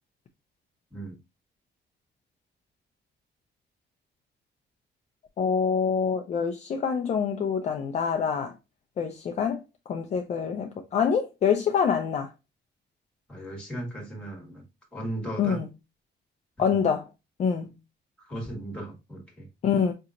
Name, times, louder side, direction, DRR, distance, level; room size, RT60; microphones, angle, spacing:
voice 1, 5.4-8.5 9.0-9.6 9.9-12.3 15.4-15.7 16.6-17.1 17.4-17.7 19.6-19.9, left 6 dB, 35° left, 0.5 m, -26 dB
voice 2, 13.3-14.6 14.9-15.6 18.2-19.5, right 1 dB, 5° left, 1.6 m, -36 dB
5.3 x 2.9 x 2.5 m
cardioid pair, 170°, 19 cm